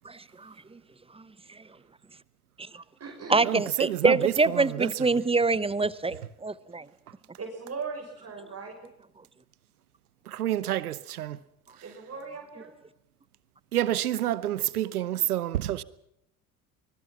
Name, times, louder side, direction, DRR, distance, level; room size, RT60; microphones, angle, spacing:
voice 1, 0.0-0.8 1.1-1.8 2.6-2.8 3.3-6.9, right 3 dB, 15° right, 0.8 m, -26 dB
voice 2, 2.7-3.5 7.4-8.7 11.8-12.7, right 4 dB, 35° right, 6.0 m, -39 dB
voice 3, 3.5-4.9 10.3-11.4 13.7-15.8, right 13 dB, 90° right, 0.9 m, -28 dB
24.5 x 21.5 x 5.9 m
hypercardioid pair, 60°, 43 cm